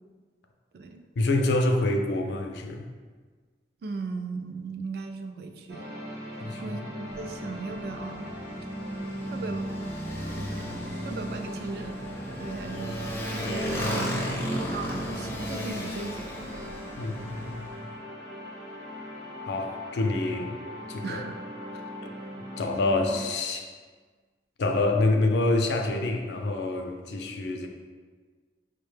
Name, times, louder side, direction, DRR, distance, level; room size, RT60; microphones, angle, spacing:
voice 1, 1.2-2.9 6.4-6.8 13.8-14.5 17.0-17.7 19.4-20.5 20.9-21.2 22.3-23.7 24.6-27.7, left 2 dB, 75° left, 4 dB, 0.4 m, -27 dB
voice 2, 3.8-5.9 6.6-8.3 9.3-9.7 11.0-12.0 12.4-14.3 14.5-16.3 21.0-21.4, right 4 dB, 60° right, 6 dB, 0.3 m, -37 dB
Decline (Loop), 5.7-23.3, equal, 80° right, 0.9 m, -39 dB
Motorcycle, 7.1-17.8, equal, 15° left, 0.4 m, -35 dB
4.8 x 2.1 x 3.2 m, 1.5 s
head